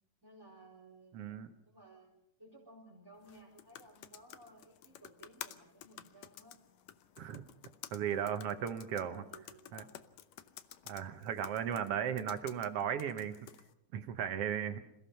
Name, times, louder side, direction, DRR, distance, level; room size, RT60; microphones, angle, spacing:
voice 1, 0.2-2.1 2.4-6.6 8.8-9.9, right 1 dB, 5° right, -3 dB, 4.7 m, -58 dB
voice 2, 1.1-1.5 7.2-7.4 7.9-9.2 9.7-9.8 10.9-13.4 13.9-14.8, right 8 dB, 60° right, 10 dB, 1.8 m, -36 dB
sound 1, 3.2-13.7, left 11 dB, 70° left, 2.0 m, -53 dB
27.0 x 17.0 x 5.8 m, 0.85 s
omnidirectional pair, 3.4 m